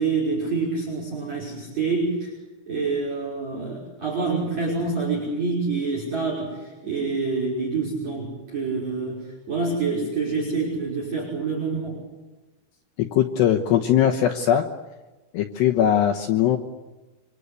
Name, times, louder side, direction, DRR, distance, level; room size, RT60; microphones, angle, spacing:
voice 1, 0.0-2.3 2.7-6.5 6.8-9.2 9.5-12.0, right 4 dB, 35° right, -2 dB, 6.8 m, -26 dB
voice 2, 13.0-14.6 15.3-16.6, left 10 dB, 70° left, 3 dB, 2.9 m, -20 dB
28.5 x 25.5 x 8.3 m, 1.2 s
omnidirectional pair, 5.9 m